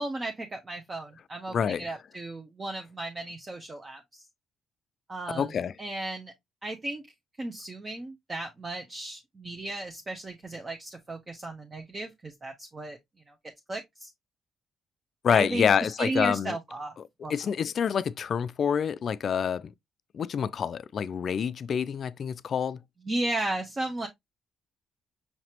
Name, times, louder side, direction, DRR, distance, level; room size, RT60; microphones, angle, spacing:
voice 1, 0.0-4.2 5.1-6.3 6.6-7.0 7.4-13.0 13.3-13.4 13.7-14.1 15.3-16.9 17.2-17.3 23.1-24.1, right 2 dB, 30° right, 0.8 m, -35 dB
voice 2, 1.5-1.9 5.3-5.7 15.2-16.6 17.3-19.7 20.1-22.8, left 7 dB, 55° left, 0.4 m, -27 dB
5.8 x 2.9 x 2.9 m
cardioid pair, 90°, 0 cm